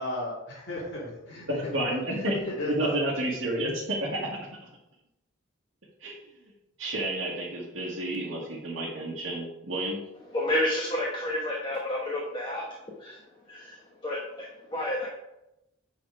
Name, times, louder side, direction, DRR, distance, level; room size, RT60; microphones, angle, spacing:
voice 1, 0.0-0.3 0.7-1.7 2.1-3.0, left 1 dB, 55° left, -8 dB, 2.3 m, -34 dB
voice 2, 1.5-2.3 2.7-4.5 6.0-6.2 6.8-10.0, right 1 dB, 80° right, -5 dB, 1.7 m, -30 dB
voice 3, 10.3-12.6 13.0-15.1, left 1 dB, 20° left, -3 dB, 1.1 m, -30 dB
8.7 x 4.1 x 4.8 m, 0.89 s
head